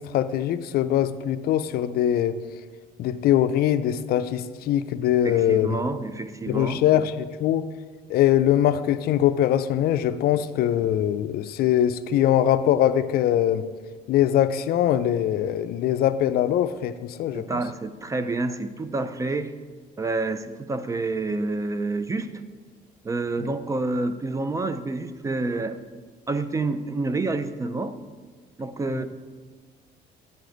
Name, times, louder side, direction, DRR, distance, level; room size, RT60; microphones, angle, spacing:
voice 1, 0.0-2.4 3.0-5.8 6.5-7.7 8.1-13.7 14.1-17.6 23.4-23.5 28.9-29.1, left 11 dB, 65° left, 12 dB, 0.4 m, -22 dB
voice 2, 5.2-6.8 17.3-19.5 20.0-22.4 23.0-25.8 26.3-28.0 28.6-29.1, right 3 dB, 20° right, 11 dB, 0.4 m, -28 dB
9.9 x 3.8 x 5.0 m, 1.5 s
cardioid pair, 110°, 17 cm